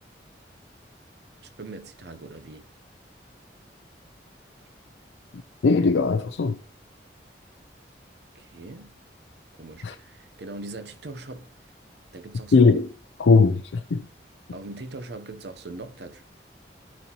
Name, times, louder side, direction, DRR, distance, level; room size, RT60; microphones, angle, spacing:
voice 1, 1.4-2.7 8.3-9.0 9.6-11.7 12.1-12.7 14.5-16.2, right 2 dB, 70° right, 0.8 m, -41 dB
voice 2, 5.6-6.6 9.8-10.0 12.5-12.9 13.2-14.1, left 4 dB, 85° left, 0.5 m, -19 dB
12.5 x 4.2 x 2.9 m
head